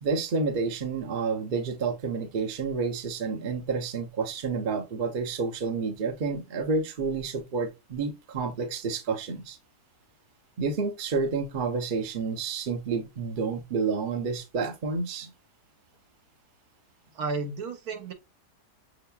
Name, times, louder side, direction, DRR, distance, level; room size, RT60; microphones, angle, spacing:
voice 1, 0.0-9.6 10.6-15.3, right 4 dB, 50° right, 0.6 m, -29 dB
voice 2, 17.1-18.1, right 4 dB, 65° right, 1.3 m, -32 dB
6.6 x 2.8 x 2.3 m
omnidirectional pair, 1.8 m